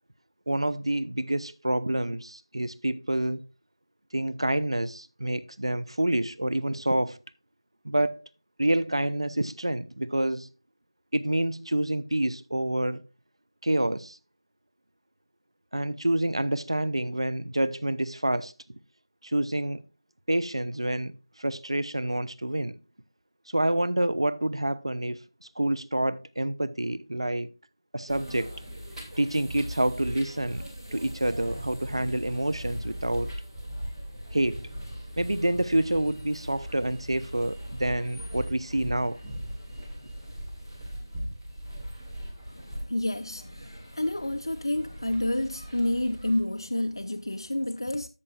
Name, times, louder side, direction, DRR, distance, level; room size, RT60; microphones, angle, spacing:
voice 1, 0.5-3.4 4.1-7.2 7.8-8.2 8.6-10.5 11.1-13.0 13.6-14.2 15.7-18.5 19.2-19.8 20.3-22.8 23.5-27.5 27.9-28.5 29.2-33.3 34.3-34.6 35.2-39.2, right 1 dB, 75° right, 0.6 m, -28 dB
sound 1, 28.1-46.4, equal, ahead, 0.6 m, -39 dB
voice 2, 42.5-48.1, left 1 dB, 55° left, 0.5 m, -29 dB
13.5 x 6.8 x 2.3 m
figure-of-eight pair, 175°, 3 cm